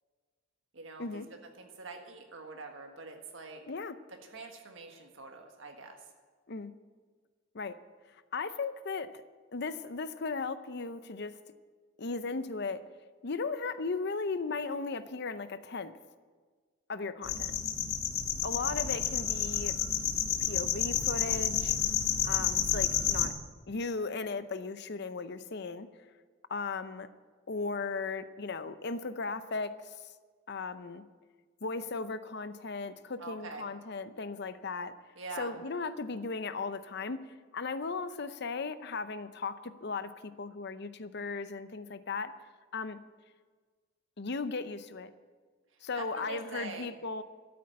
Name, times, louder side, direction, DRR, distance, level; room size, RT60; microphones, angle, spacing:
voice 1, 0.7-3.6 4.1-6.1 33.2-33.6 35.1-35.5 45.9-46.9, right 3 dB, 70° right, 3 dB, 1.6 m, -45 dB
voice 2, 3.7-4.0 6.5-6.7 7.5-7.8 8.3-9.2 9.5-11.4 12.0-12.8 13.2-15.9 16.9-17.5 18.4-19.8 20.2-21.8 22.2-23.3 23.7-25.9 26.5-27.1 27.5-30.1 30.5-31.0 31.6-34.9 35.4-37.3 37.5-42.3 42.7-43.0 44.2-45.1 45.8-47.2, left 4 dB, 55° left, 12 dB, 0.7 m, -36 dB
sound 1, 17.2-23.3, left 8 dB, 85° left, 1.8 m, -30 dB
13.5 x 8.7 x 8.6 m, 1.5 s
head